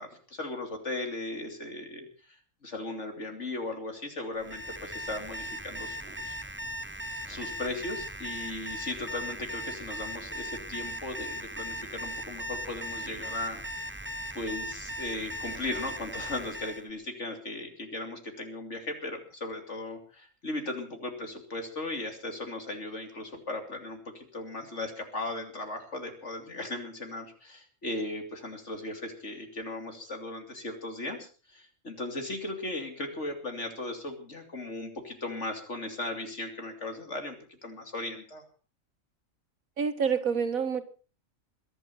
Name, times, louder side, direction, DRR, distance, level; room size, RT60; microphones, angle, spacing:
voice 1, 0.0-6.4 7.3-13.6 14.3-38.4, left 2 dB, 60° left, 5 dB, 3.2 m, -37 dB
Alarm, 4.4-16.9, equal, 10° right, 0.8 m, -38 dB
voice 2, 39.8-40.8, right 6 dB, 85° right, 9 dB, 2.1 m, -27 dB
22.5 x 10.5 x 5.7 m, 0.39 s
omnidirectional pair, 1.4 m